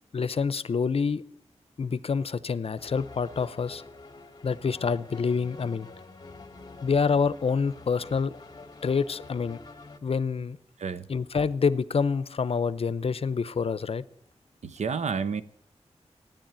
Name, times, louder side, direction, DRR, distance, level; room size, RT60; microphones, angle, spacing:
voice 1, 0.1-1.2 1.8-3.8 4.4-5.9 6.8-8.4 8.8-9.6 10.0-10.6 11.1-14.0, left 5 dB, 60° left, 0.7 m, -27 dB
sound 1, 2.8-10.0, left 3 dB, 35° left, 1.4 m, -47 dB
voice 2, 14.6-15.4, right 5 dB, 85° right, 0.8 m, -30 dB
16.0 x 10.5 x 8.9 m
wide cardioid pair, 125°, 11 cm